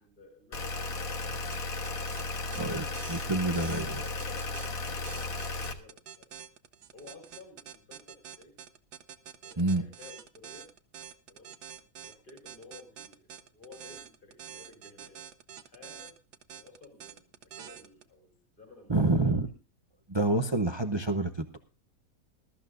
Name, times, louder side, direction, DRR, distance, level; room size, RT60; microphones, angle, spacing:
voice 1, 0.0-1.8 3.6-6.3 6.9-8.5 9.4-10.7 11.3-15.3 15.6-16.2 16.5-19.3, left 3 dB, 30° left, 3 dB, 4.0 m, -54 dB
sound 1, 0.5-5.7, left 3 dB, 55° left, 1.7 m, -35 dB
sound 2, 1.4-18.0, right 9 dB, 70° right, 1.4 m, -47 dB
voice 2, 2.5-4.0 9.6-9.9 18.9-19.5 20.1-21.6, right 2 dB, 40° right, 8 dB, 0.3 m, -28 dB
20.5 x 13.0 x 2.6 m, 0.33 s
omnidirectional pair, 1.8 m